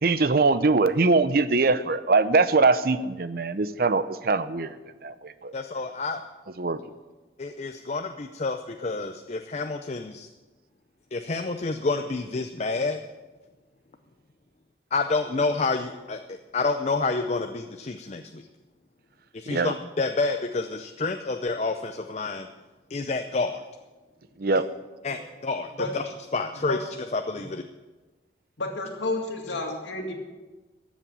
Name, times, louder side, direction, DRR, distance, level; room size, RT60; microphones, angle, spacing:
voice 1, 0.0-4.8 5.0-5.5 6.6-6.8 19.5-19.7 24.4-24.6, right 3 dB, 55° right, 13 dB, 0.6 m, -22 dB
voice 2, 5.5-6.2 7.4-10.3 11.1-13.0 14.9-18.5 19.3-22.5 22.9-23.6 25.0-27.6, left 3 dB, 35° left, 7 dB, 0.5 m, -29 dB
voice 3, 28.6-30.1, left 2 dB, 80° left, 2 dB, 2.3 m, -30 dB
13.5 x 7.3 x 8.5 m, 1.2 s
head